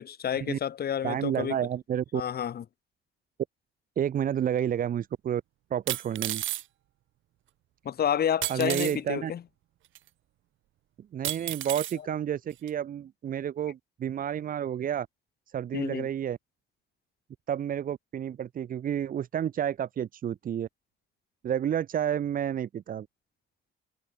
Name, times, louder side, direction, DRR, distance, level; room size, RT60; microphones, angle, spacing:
voice 1, 0.0-1.6 2.1-2.6 7.8-9.4 15.7-16.1, left 9 dB, 55° left, 1.2 m, -30 dB
voice 2, 1.0-2.2 4.0-5.4 5.7-6.4 8.5-9.3 11.1-15.1 15.5-16.4 17.5-20.7 21.4-23.1, right 9 dB, 45° right, 0.5 m, -30 dB
sound 1, 4.6-4.7 5.9-6.6 8.4-9.0 9.9-10.0 11.2-12.0 12.7-12.8, right 14 dB, 80° right, 1.3 m, -32 dB
cardioid pair, 90°, 20 cm